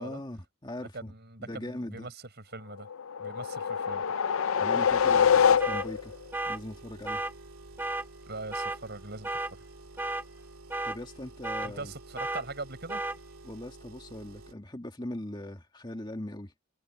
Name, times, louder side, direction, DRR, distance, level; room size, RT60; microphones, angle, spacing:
voice 1, 0.0-1.1 1.4-2.1 4.6-6.1 6.5-7.2 10.8-11.9 13.4-16.5, left 1 dB, 20° left, 1.9 m, -40 dB
voice 2, 0.8-2.9 3.2-4.0 8.3-9.6 11.6-13.0, right 3 dB, 50° right, 6.2 m, -41 dB
sound 1, 2.9-6.1, left 7 dB, 70° left, 0.5 m, -25 dB
sound 2, 4.9-14.5, right 2 dB, 85° right, 2.3 m, -50 dB
sound 3, 5.6-5.9 6.3-6.6 7.1-7.3 7.8-8.1 8.5-8.8 9.2-9.5 10.0-10.2 10.7-11.0 11.4-11.7 12.2-12.4 12.9-13.2, right 2 dB, 10° right, 1.4 m, -33 dB
head